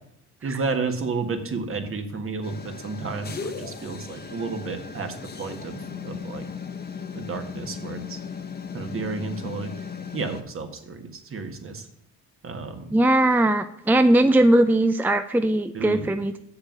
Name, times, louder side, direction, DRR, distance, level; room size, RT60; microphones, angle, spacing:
voice 1, 0.4-6.5 7.1-8.2 8.7-9.8 10.1-11.9 12.4-13.0 15.7-16.1, right 4 dB, 45° right, 6 dB, 1.7 m, -32 dB
sound 1, 2.4-10.4, left 6 dB, 35° left, 1.1 m, -37 dB
voice 2, 12.9-16.4, right 1 dB, 5° right, 9 dB, 0.5 m, -19 dB
7.4 x 6.7 x 7.2 m, 0.77 s
cardioid pair, 90°, 30 cm